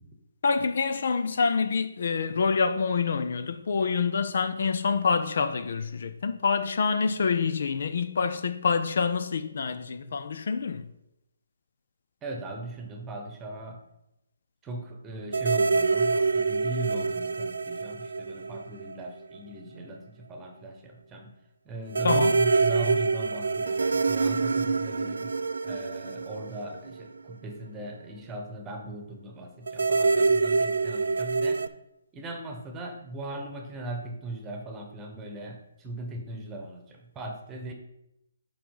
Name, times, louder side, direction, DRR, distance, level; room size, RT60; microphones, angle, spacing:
voice 1, 0.4-10.9 22.0-22.3, left 5 dB, 55° left, 0.5 m, -26 dB
voice 2, 12.2-13.8 14.6-21.3 21.6-25.3 25.6-31.7 32.1-37.7, right 2 dB, 15° right, 1.1 m, -38 dB
sound 1, 15.3-19.1 19.3-19.4 21.9-27.3 29.7-31.7, right 4 dB, 70° right, 0.4 m, -26 dB
5.8 x 5.0 x 5.4 m
figure-of-eight pair, 145°, 0 cm